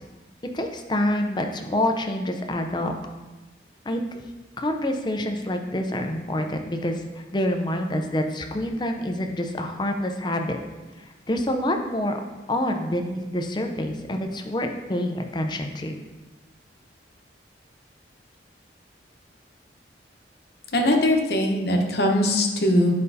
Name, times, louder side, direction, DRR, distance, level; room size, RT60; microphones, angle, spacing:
voice 1, 0.5-2.9 3.9-4.2 4.6-10.6 11.0-12.1 12.5-16.0, left 1 dB, 25° left, 4 dB, 0.5 m, -27 dB
voice 2, 20.7-22.9, left 1 dB, 55° left, 2 dB, 0.9 m, -21 dB
9.9 x 5.3 x 2.7 m, 1.2 s
head